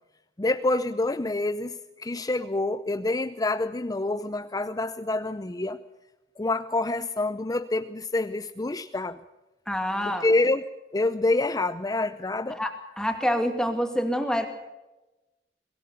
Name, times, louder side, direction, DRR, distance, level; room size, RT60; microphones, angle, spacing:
voice 1, 0.4-5.8 6.4-9.2 10.1-10.6 10.9-12.6, left 2 dB, 20° left, 11 dB, 0.6 m, -27 dB
voice 2, 9.7-10.3 12.5-14.5, equal, 5° left, 5 dB, 2.2 m, -27 dB
23.5 x 17.5 x 7.0 m, 1.0 s
head